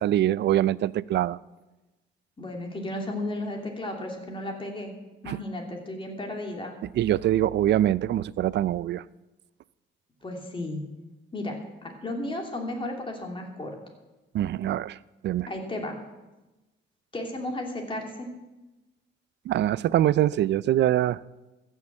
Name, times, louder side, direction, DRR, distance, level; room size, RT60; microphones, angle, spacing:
voice 1, 0.0-1.4 5.3-5.4 7.0-9.0 14.3-15.0 15.2-15.5 19.5-21.2, right 12 dB, 60° right, 20 dB, 0.4 m, -24 dB
voice 2, 2.4-4.9 5.2-6.7 10.2-10.8 11.3-11.5 11.8-13.7 15.5-15.9 17.1-18.3, left 1 dB, 25° left, 1 dB, 2.9 m, -34 dB
15.0 x 6.5 x 7.4 m, 1.1 s
cardioid pair, 90°, 20 cm